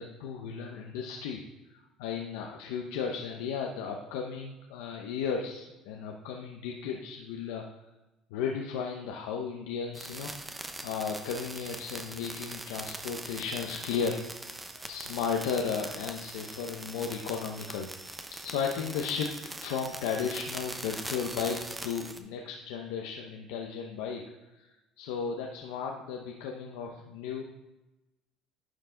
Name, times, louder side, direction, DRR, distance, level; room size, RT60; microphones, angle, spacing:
voice 1, 0.0-1.4 1.7-7.6 8.3-10.3 10.8-21.6 21.8-24.2 24.5-24.7 25.0-27.4, left 6 dB, 85° left, 1 dB, 0.8 m, -35 dB
sound 1, 9.9-22.2, right 2 dB, 15° right, 0.8 m, -42 dB
11.0 x 4.5 x 3.9 m, 1.0 s
supercardioid pair, 100°, 0 cm